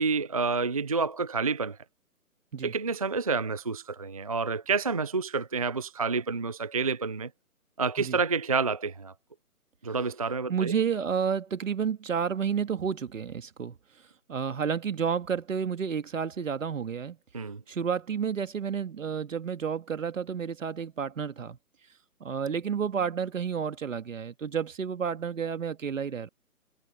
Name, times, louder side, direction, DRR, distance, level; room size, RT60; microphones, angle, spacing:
voice 1, 0.0-1.8 2.6-7.3 7.8-9.1 9.8-10.7 17.3-17.6, right 4 dB, 25° right, 0.6 m, -29 dB
voice 2, 10.5-13.8 14.3-17.2 17.7-21.6 22.2-26.3, right 7 dB, 55° right, 2.1 m, -30 dB
figure-of-eight pair, 155°, 45 cm